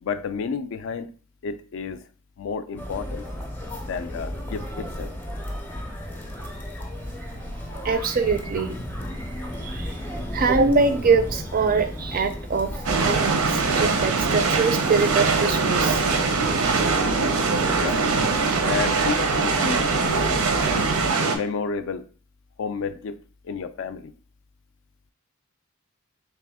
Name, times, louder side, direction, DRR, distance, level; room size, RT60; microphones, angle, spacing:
voice 1, 0.0-1.1 1.4-2.0 2.4-3.3 3.8-5.1 17.8-18.1 18.6-20.4 21.3-22.1 22.6-23.2 23.4-24.1, left 5 dB, 60° left, 12 dB, 0.3 m, -31 dB
sound 1, 2.8-21.1, equal, 10° left, 0.5 m, -34 dB
voice 2, 7.8-8.8 9.6-10.0 10.3-12.7 13.0-16.0, right 4 dB, 40° right, 9 dB, 0.4 m, -23 dB
sound 2, 12.9-21.4, right 4 dB, 85° right, 0.6 m, -22 dB
3.4 x 3.0 x 3.5 m, 0.40 s
head